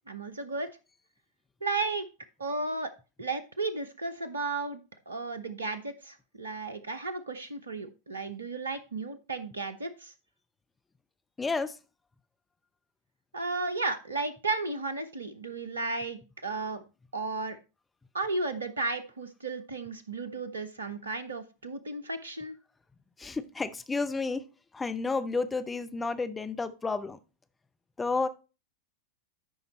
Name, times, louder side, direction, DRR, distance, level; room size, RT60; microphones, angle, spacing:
voice 1, 0.1-0.7 1.6-2.1 2.4-2.9 3.2-4.8 5.1-10.1 13.3-16.8 17.1-17.6 18.1-22.6, right 3 dB, 75° right, 0.9 m, -34 dB
voice 2, 11.4-11.7 23.2-24.4 24.7-27.2 28.0-28.3, left 3 dB, 10° left, 0.6 m, -31 dB
12.5 x 5.2 x 3.1 m
figure-of-eight pair, 90°, 0 cm